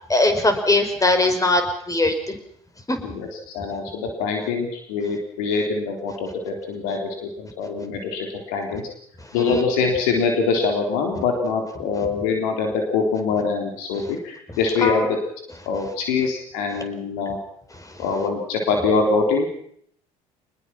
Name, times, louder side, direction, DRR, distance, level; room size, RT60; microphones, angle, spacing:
voice 1, 0.1-1.6 1.9-2.4 2.9-3.0 9.4-9.6 14.8-15.1, left 2 dB, 20° left, 7 dB, 5.1 m, -20 dB
voice 2, 3.0-8.8 9.3-15.2 15.7-17.4 18.0-19.5, left 4 dB, 75° left, 2 dB, 3.8 m, -24 dB
24.5 x 20.5 x 6.0 m, 0.66 s
hypercardioid pair, 55°, 19 cm